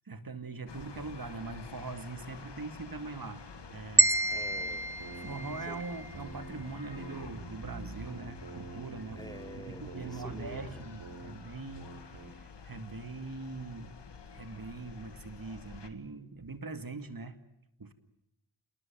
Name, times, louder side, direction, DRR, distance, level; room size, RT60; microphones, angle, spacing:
voice 1, 0.1-4.1 5.1-9.2 9.5-13.9 14.3-17.4 17.8-17.9, right 3 dB, 55° right, 10 dB, 2.5 m, -42 dB
sound 1, 0.7-15.9, left 5 dB, 90° left, 2.0 m, -49 dB
sound 2, 4.0-6.2, right 1 dB, 5° right, 1.1 m, -28 dB
voice 2, 4.3-4.9 5.7-5.8 9.2-10.8, equal, 10° left, 7 dB, 3.9 m, -47 dB
sound 3, 4.4-6.6 6.9-11.3 11.7-12.3, right 3 dB, 85° right, 3.9 m, -46 dB
28.0 x 20.0 x 9.1 m, 0.85 s
cardioid pair, 50°, 40 cm